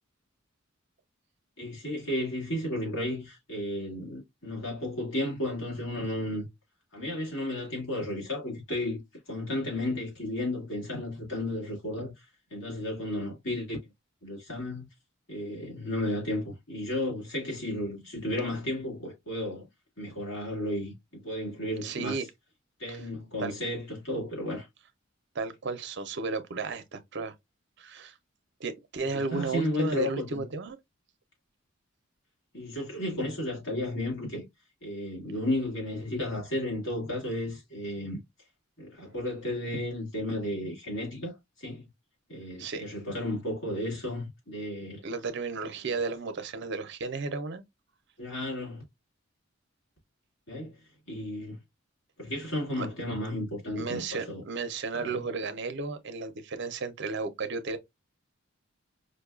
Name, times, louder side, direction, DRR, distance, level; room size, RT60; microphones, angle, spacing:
voice 1, 1.6-6.5 6.9-9.0 9.3-12.3 12.5-13.8 14.2-14.9 15.3-19.7 20.0-22.2 22.8-24.7 29.1-30.4 32.5-34.5 34.8-38.2 38.8-41.9 42.3-45.0 48.2-48.8 50.5-50.8 51.1-51.6 52.2-54.4 54.9-55.2, left 1 dB, 70° left, 2.1 m, -33 dB
voice 2, 21.8-22.2 22.9-23.0 23.4-23.5 25.3-27.3 27.8-28.2 28.6-30.8 42.6-42.8 45.0-47.6 52.8-52.9 53.7-57.8, right 4 dB, 60° right, 0.6 m, -34 dB
5.1 x 2.3 x 2.3 m
head